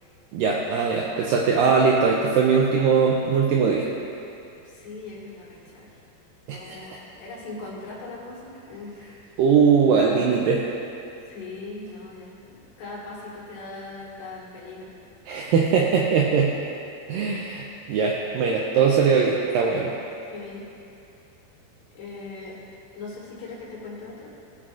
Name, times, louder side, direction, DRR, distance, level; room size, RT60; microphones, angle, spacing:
voice 1, 0.3-3.9 6.5-6.8 9.4-10.6 15.3-16.5 17.1-19.9, right 5 dB, 90° right, -2 dB, 1.9 m, -21 dB
voice 2, 4.6-5.9 6.5-8.9 10.0-10.2 11.3-15.0 20.2-20.7 22.0-22.6 23.0-24.3, left 3 dB, 85° left, -6 dB, 4.0 m, -39 dB
18.0 x 6.2 x 2.5 m, 2.7 s
omnidirectional pair, 4.7 m